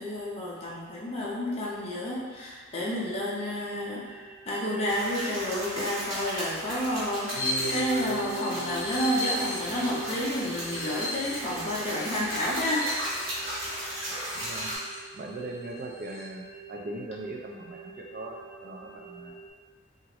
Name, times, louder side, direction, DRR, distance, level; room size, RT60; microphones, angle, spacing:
voice 1, 0.0-12.8, left 1 dB, 30° left, -6 dB, 0.5 m, -30 dB
sound 1, 4.0-19.5, right 5 dB, 15° right, 0.8 m, -49 dB
sound 2, 4.9-14.8, right 1 dB, 65° right, 1.2 m, -36 dB
sound 3, 7.3-15.0 15.4-15.5 15.8-16.3, left 1 dB, 75° left, 0.5 m, -35 dB
voice 2, 14.3-14.7 15.1-19.4, right 2 dB, 45° right, 0 dB, 0.4 m, -40 dB
2.9 x 2.5 x 2.9 m, 1.4 s
head